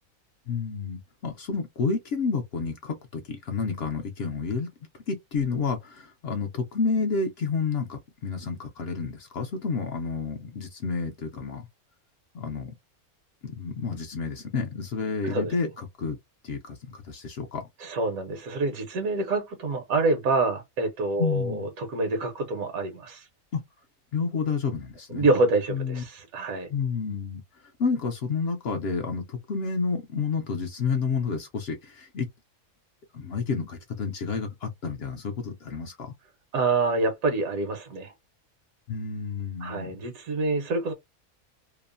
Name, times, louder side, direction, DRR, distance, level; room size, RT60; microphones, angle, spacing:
voice 1, 0.5-11.7 12.3-12.7 13.4-16.2 16.4-17.6 21.2-21.7 23.5-23.6 24.1-25.3 25.7-26.0 26.7-32.3 33.1-36.1 38.9-39.9, left 5 dB, 65° left, 0.6 m, -30 dB
voice 2, 17.8-23.2 25.1-26.7 36.5-38.1 39.6-40.9, right 3 dB, 80° right, 1.2 m, -26 dB
2.9 x 2.0 x 2.4 m
omnidirectional pair, 1.5 m